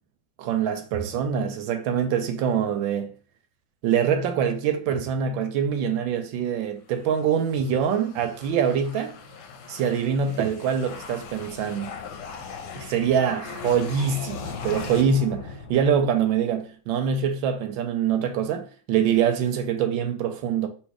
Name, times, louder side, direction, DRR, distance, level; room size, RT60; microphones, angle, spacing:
voice 1, 0.4-3.1 3.8-9.1 9.7-11.9 12.8-20.7, right 7 dB, 75° right, 1.2 m, -24 dB
sound 1, 6.9-16.3, left 6 dB, 65° left, 1.1 m, -39 dB
3.2 x 2.9 x 4.6 m
omnidirectional pair, 2.3 m